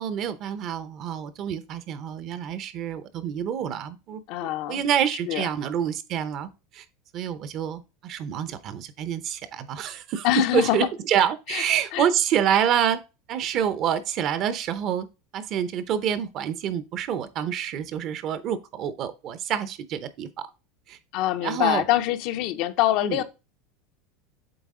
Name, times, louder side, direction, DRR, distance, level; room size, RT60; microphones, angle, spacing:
voice 1, 0.0-6.8 7.1-13.0 13.3-15.1 15.3-20.5 20.9-21.0 21.4-21.9 23.0-23.2, right 9 dB, 45° right, 0.7 m, -27 dB
voice 2, 4.3-4.8 5.3-5.5 10.2-10.9 11.5-11.7 11.9-12.1 21.1-23.2, left 14 dB, 60° left, 0.6 m, -24 dB
7.9 x 3.5 x 3.6 m
supercardioid pair, 130°, 0 cm